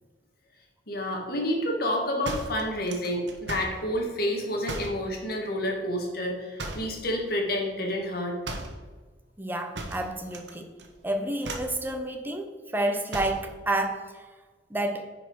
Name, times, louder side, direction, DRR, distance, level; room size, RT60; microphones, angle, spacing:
voice 1, 0.9-8.4, equal, 60° left, 1 dB, 1.9 m, -29 dB
sound 1, 2.2-3.8 4.6-5.0 6.6-7.0 8.4-8.8 9.7-10.5 10.8-11.1 11.4-11.8 13.1-13.5, right 2 dB, 90° right, 1.2 m, -36 dB
voice 2, 9.4-10.7 11.0-14.2 14.7-15.0, right 1 dB, 10° right, 4 dB, 0.9 m, -30 dB
9.6 x 5.1 x 4.7 m, 1.4 s
head